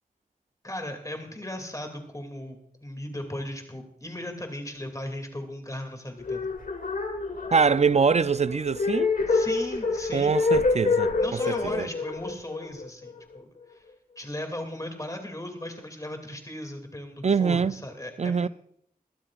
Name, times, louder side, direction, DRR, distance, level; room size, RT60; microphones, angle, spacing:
voice 1, 0.6-6.5 9.3-10.4 11.2-13.8 14.2-18.5, left 1 dB, 20° left, 2.5 m, -37 dB
sound 1, 6.2-13.4, left 3 dB, 65° left, 1.6 m, -27 dB
voice 2, 7.5-9.1 10.1-11.9 17.2-17.8 18.2-18.5, right 5 dB, 45° right, 0.4 m, -24 dB
22.5 x 12.5 x 2.5 m
wide cardioid pair, 70°, 15 cm